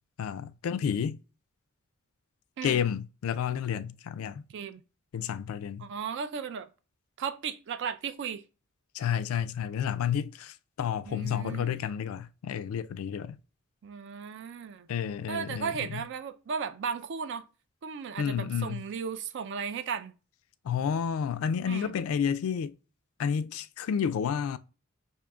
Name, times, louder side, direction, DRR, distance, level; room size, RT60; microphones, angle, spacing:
voice 1, 0.2-1.2 2.6-4.4 5.1-5.9 8.9-13.4 14.9-16.0 18.2-18.8 20.6-22.7 23.2-24.6, left 8 dB, 70° left, 0.3 m, -30 dB
voice 2, 4.5-4.8 5.8-6.7 7.2-8.4 11.1-11.8 13.8-14.9 15.3-17.4 17.8-20.1 21.6-21.9, right 6 dB, 55° right, 0.4 m, -35 dB
5.0 x 2.7 x 2.2 m
head